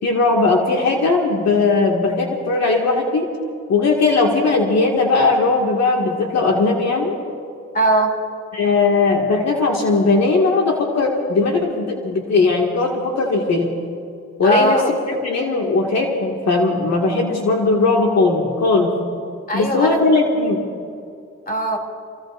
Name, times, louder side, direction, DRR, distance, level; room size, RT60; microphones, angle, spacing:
voice 1, 0.0-3.3 3.7-7.2 8.5-13.7 14.4-18.9 19.5-20.6, left 3 dB, 60° left, -1 dB, 2.1 m, -18 dB
voice 2, 7.7-8.1 14.4-14.9 19.5-20.0 21.5-21.8, right 1 dB, 30° left, 2 dB, 3.0 m, -19 dB
29.0 x 16.5 x 2.6 m, 2.4 s
cardioid pair, 90°, 30 cm